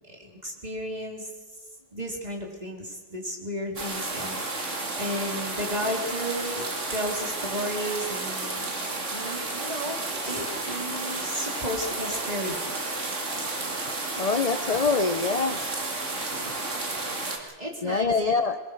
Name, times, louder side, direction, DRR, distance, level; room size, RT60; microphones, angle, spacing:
voice 1, 0.1-1.3 1.9-8.7 9.1-13.1 17.6-18.4, equal, 25° right, 0 dB, 3.7 m, -34 dB
sound 1, 3.8-17.4, right 2 dB, 50° right, 2.6 m, -32 dB
voice 2, 14.2-15.6 16.3-16.5 17.8-18.6, left 4 dB, 35° left, 10 dB, 0.6 m, -25 dB
22.5 x 22.0 x 6.6 m, 1.2 s
omnidirectional pair, 1.6 m